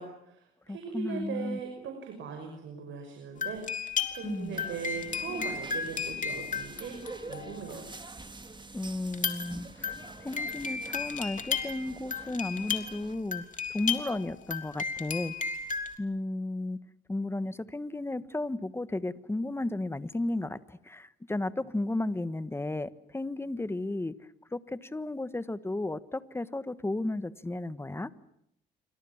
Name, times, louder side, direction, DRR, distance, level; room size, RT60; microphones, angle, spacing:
voice 1, 0.0-3.6 4.1-7.0 7.3-7.9, right 6 dB, 75° right, 4 dB, 5.7 m, -39 dB
voice 2, 0.7-1.6 4.2-4.6 8.7-9.9 10.2-13.4 13.7-15.3 16.0-16.8 17.1-24.1 24.5-28.1, left 2 dB, 10° left, 14 dB, 1.4 m, -34 dB
sound 1, 3.4-8.0 9.1-15.9, left 6 dB, 40° left, 3.4 m, -34 dB
sound 2, 4.5-13.1, right 3 dB, 25° right, 2.7 m, -46 dB
28.5 x 25.5 x 7.3 m, 0.74 s
cardioid pair, 90°, 20 cm